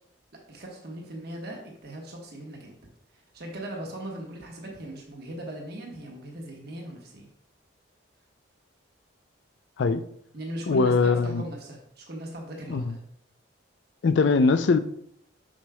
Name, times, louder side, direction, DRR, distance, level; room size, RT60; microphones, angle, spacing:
voice 1, 0.5-2.7 3.1-7.3 10.3-13.0 14.2-14.3, right 1 dB, 50° right, 0 dB, 1.2 m, -39 dB
voice 2, 10.7-11.4 12.7-13.0 14.0-14.8, left 4 dB, 60° left, 12 dB, 0.4 m, -21 dB
7.2 x 6.1 x 2.3 m, 0.69 s
head